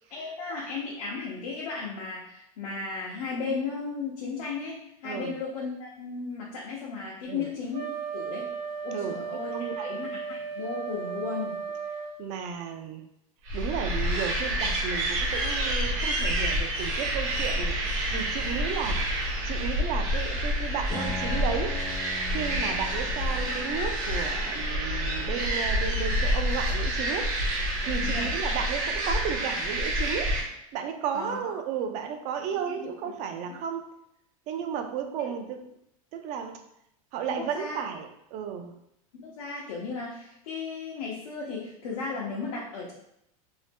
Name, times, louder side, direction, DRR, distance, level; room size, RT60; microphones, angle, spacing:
voice 1, 0.1-8.5 8.8-11.6 28.0-28.3 31.1-31.5 32.7-33.1 33.4-33.5 37.3-37.8 39.1-42.9, left 4 dB, 85° left, -4 dB, 0.7 m, -35 dB
voice 2, 5.0-5.4 7.3-7.5 8.9-9.2 9.5-9.9 12.2-13.1 13.5-21.8 22.3-27.3 27.8-30.3 30.7-33.8 34.5-35.6 36.1-36.6 37.1-38.7, right 7 dB, 40° right, 6 dB, 0.4 m, -33 dB
Wind instrument woodwind instrument, 7.7-12.2, right 6 dB, 85° right, 0.9 m, -35 dB
sound 1, 13.5-30.4, equal, 60° right, 0.9 m, -28 dB
Piano, 20.9-30.5, left 3 dB, 25° left, 0.5 m, -43 dB
2.7 x 2.1 x 3.4 m, 0.77 s
supercardioid pair, 150°, 18 cm